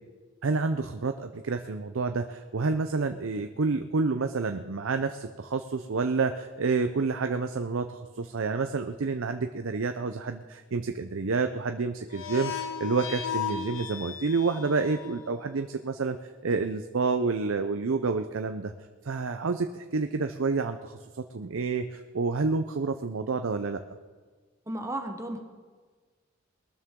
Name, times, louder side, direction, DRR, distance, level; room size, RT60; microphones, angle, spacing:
voice 1, 0.4-16.2 16.4-18.7 19.0-23.8, right 4 dB, 80° right, 7 dB, 0.6 m, -29 dB
sound 1, 12.1-15.4, left 8 dB, 75° left, 1.9 m, -35 dB
voice 2, 24.7-25.4, right 1 dB, 15° right, 5 dB, 1.1 m, -33 dB
21.5 x 13.0 x 3.7 m, 1.5 s
head